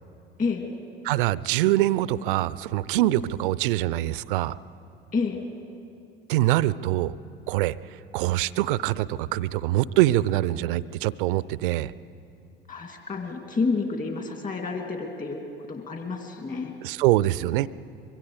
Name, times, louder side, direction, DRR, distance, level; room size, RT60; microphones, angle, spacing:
voice 1, 1.0-4.6 6.3-7.1 7.5-11.9 16.8-17.7, right 15 dB, 65° right, 20 dB, 0.5 m, -24 dB
voice 2, 5.1-5.4 12.7-15.4 15.7-16.7, left 4 dB, 30° left, 3 dB, 2.8 m, -29 dB
24.5 x 22.5 x 5.0 m, 2.7 s
figure-of-eight pair, 65°, 29 cm